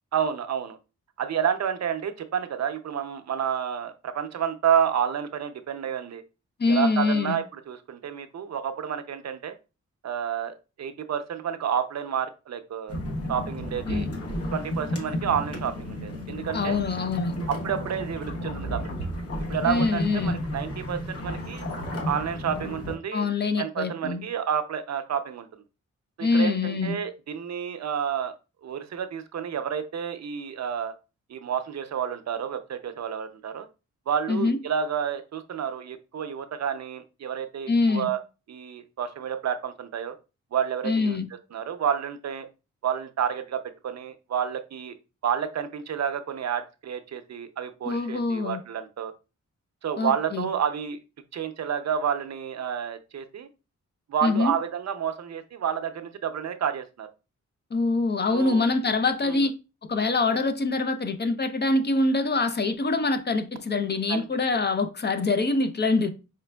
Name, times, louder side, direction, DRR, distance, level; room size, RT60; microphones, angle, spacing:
voice 1, 0.1-0.8 1.2-6.2 6.7-9.6 10.0-12.9 13.3-14.1 14.5-16.8 17.5-18.8 19.5-21.6 22.1-23.3 23.6-25.5 26.2-28.3 28.6-30.9 31.3-33.7 34.1-38.2 38.5-40.1 40.5-41.2 41.5-42.5 42.8-44.9 45.2-49.1 49.8-51.0 51.3-53.5 54.1-57.1 58.3-58.6 59.2-59.5 64.1-64.4, right 8 dB, 60° right, 0.6 m, -30 dB
voice 2, 6.6-7.4 13.9-14.1 16.5-17.4 19.6-20.4 23.1-24.2 26.2-27.0 34.3-34.6 37.7-38.1 40.8-41.3 47.8-48.6 50.0-50.5 54.2-54.5 57.7-59.5 59.9-66.1, left 3 dB, 35° left, 0.5 m, -24 dB
sound 1, 12.9-23.0, left 1 dB, 50° left, 1.0 m, -32 dB
5.0 x 3.3 x 2.2 m
wide cardioid pair, 105°, 30 cm